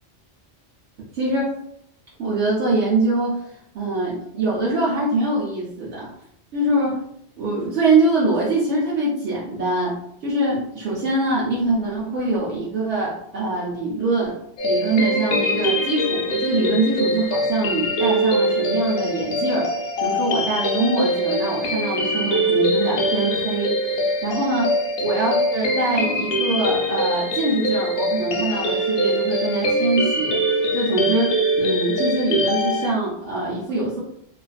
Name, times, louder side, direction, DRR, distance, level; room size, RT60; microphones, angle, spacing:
voice 1, 1.1-1.5 2.2-6.1 6.5-7.0 7.4-14.4 14.6-19.7 20.0-24.7 25.0-30.4 30.7-34.0, right 2 dB, 75° right, -6 dB, 0.9 m, -23 dB
sound 1, 14.6-32.9, equal, 65° left, 0.7 m, -23 dB
2.4 x 2.3 x 2.3 m, 0.72 s
omnidirectional pair, 1.2 m